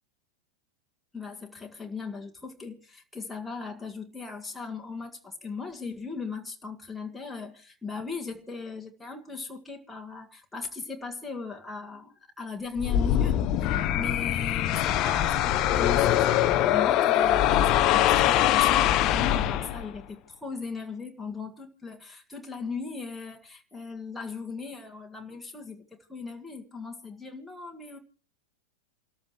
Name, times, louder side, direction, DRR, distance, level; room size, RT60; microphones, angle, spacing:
voice 1, 1.1-13.7 13.9-16.3 16.6-28.0, left 4 dB, 5° left, 1.8 m, -38 dB
sound 1, 12.8-20.0, left 12 dB, 35° left, 0.8 m, -23 dB
28.5 x 13.5 x 3.1 m
figure-of-eight pair, 90°, 0 cm